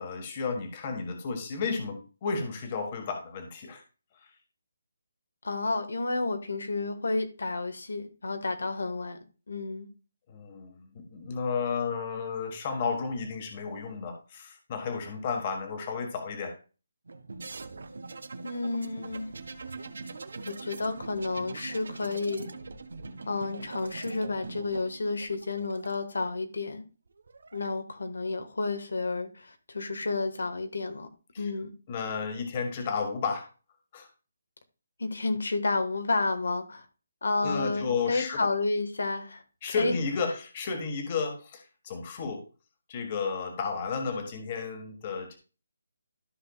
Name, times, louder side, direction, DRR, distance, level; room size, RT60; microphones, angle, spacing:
voice 1, 0.0-3.8 4.1-4.3 10.3-16.6 31.3-31.5 31.9-33.5 33.9-34.1 37.4-38.5 39.6-42.4 42.9-45.4, left 5 dB, 25° left, 5 dB, 1.5 m, -32 dB
voice 2, 5.4-9.2 9.5-9.9 18.4-19.3 20.4-22.5 23.3-26.9 27.5-31.1 31.4-31.7 35.0-36.8 37.2-39.4 39.8-40.0, left 3 dB, 85° left, 7 dB, 1.4 m, -31 dB
sound 1, 17.1-24.8, right 3 dB, 90° right, 1.2 m, -45 dB
sound 2, 17.4-25.9 27.1-27.7, right 4 dB, 75° right, 1.0 m, -45 dB
13.5 x 5.6 x 2.3 m, 0.34 s
hypercardioid pair, 170°, 0 cm